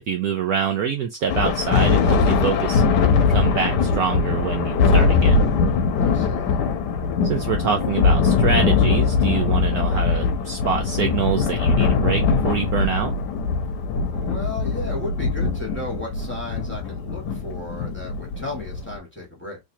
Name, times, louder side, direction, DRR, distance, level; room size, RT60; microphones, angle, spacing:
voice 1, 0.1-2.8 3.3-5.4 7.2-13.1, right 7 dB, 70° right, 0.9 m, -25 dB
Thunder, 1.3-19.0, left 5 dB, 70° left, 1.3 m, -21 dB
voice 2, 6.0-6.6 14.1-19.6, left 2 dB, 5° left, 1.5 m, -34 dB
3.5 x 3.1 x 2.7 m
omnidirectional pair, 2.0 m